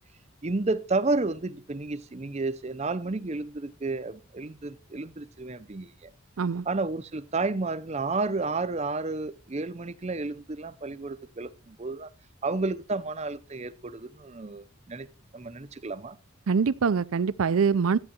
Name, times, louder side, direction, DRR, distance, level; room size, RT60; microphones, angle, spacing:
voice 1, 0.4-6.1 6.7-12.1 12.4-15.1 15.3-16.2, right 3 dB, 30° right, 0.6 m, -31 dB
voice 2, 16.5-18.0, right 5 dB, 85° right, 0.5 m, -24 dB
13.5 x 9.8 x 2.9 m
head